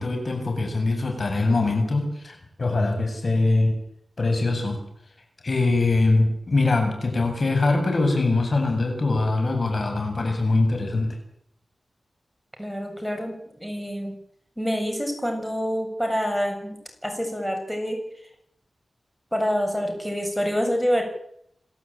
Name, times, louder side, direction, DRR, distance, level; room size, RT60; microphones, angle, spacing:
voice 1, 0.0-3.8 4.2-4.8 5.4-11.1, left 2 dB, 55° left, 4 dB, 7.6 m, -22 dB
voice 2, 12.6-13.3 13.6-14.2 14.6-16.8 17.0-18.0 19.3-21.0, equal, ahead, 3 dB, 7.1 m, -26 dB
28.0 x 12.5 x 9.0 m, 0.72 s
cardioid pair, 55°, 0 cm